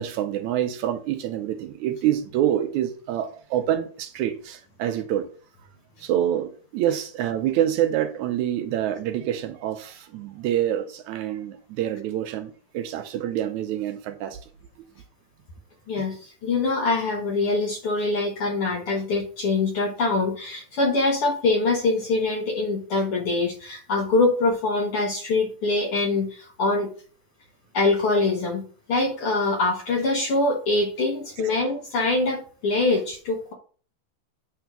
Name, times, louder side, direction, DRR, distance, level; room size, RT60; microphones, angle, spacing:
voice 1, 0.0-5.3 6.0-14.4, right 11 dB, 75° right, 1.9 m, -26 dB
voice 2, 15.9-26.9 27.7-28.6 28.9-33.5, left 3 dB, 60° left, 1.6 m, -24 dB
8.7 x 3.5 x 5.9 m
omnidirectional pair, 3.6 m